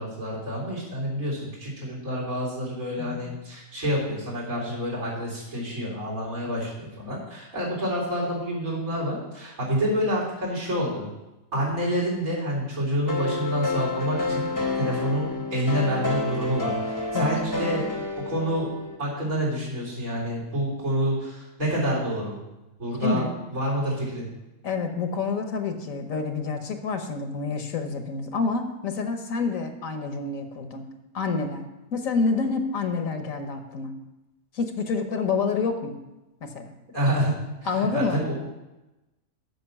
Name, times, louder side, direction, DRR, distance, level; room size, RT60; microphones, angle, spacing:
voice 1, 0.0-11.1 11.5-14.5 14.8-15.2 15.5-17.8 18.3-18.7 19.0-22.4 22.8-23.2 23.5-24.3 36.9-37.3 37.7-38.3, equal, 80° right, -5 dB, 4.2 m, -28 dB
sound 1, 13.1-19.0, left 3 dB, 15° left, 0.8 m, -29 dB
voice 2, 17.1-17.5 23.0-23.3 24.6-30.9 31.1-31.6 31.9-33.9 34.5-35.9 36.4-36.7 37.6-38.2, left 4 dB, 70° left, 6 dB, 1.4 m, -28 dB
7.9 x 6.2 x 7.1 m, 1.0 s
omnidirectional pair, 1.5 m